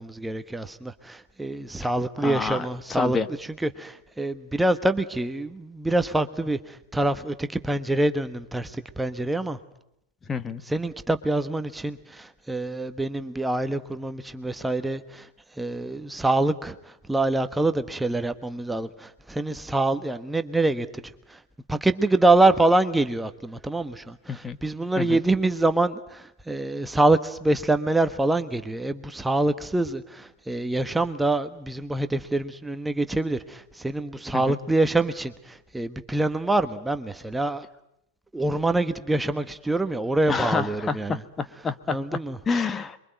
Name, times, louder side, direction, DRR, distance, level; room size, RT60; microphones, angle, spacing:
voice 1, 0.0-9.6 10.6-21.4 21.7-37.7 38.3-41.2 41.9-42.4, right 2 dB, 5° right, 1.2 m, -25 dB
voice 2, 2.2-2.6 2.9-3.3 10.3-10.6 24.3-24.6 25.0-25.2 34.3-34.6 40.3-42.0 42.5-43.0, left 5 dB, 20° left, 1.4 m, -28 dB
27.0 x 23.5 x 9.3 m
hypercardioid pair, 95°, 0 cm